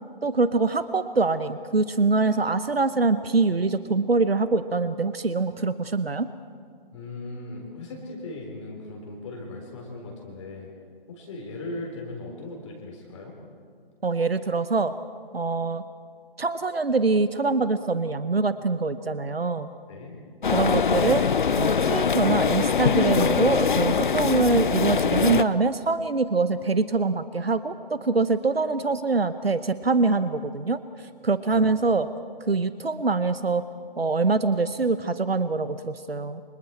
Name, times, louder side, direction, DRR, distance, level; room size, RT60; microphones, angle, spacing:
voice 1, 0.2-6.3 14.0-14.9 15.3-15.8 16.4-19.7 20.5-21.2 21.6-30.8 31.2-32.1 32.5-33.6 34.0-36.4, right 3 dB, 85° right, 13 dB, 1.0 m, -24 dB
voice 2, 6.9-10.7 11.1-13.4 19.9-20.2 31.5-31.8, left 2 dB, 30° left, -1 dB, 3.9 m, -38 dB
sound 1, 20.4-25.4, left 6 dB, 55° left, 0.8 m, -23 dB
29.5 x 25.5 x 4.4 m, 2.2 s
figure-of-eight pair, 145°, 29 cm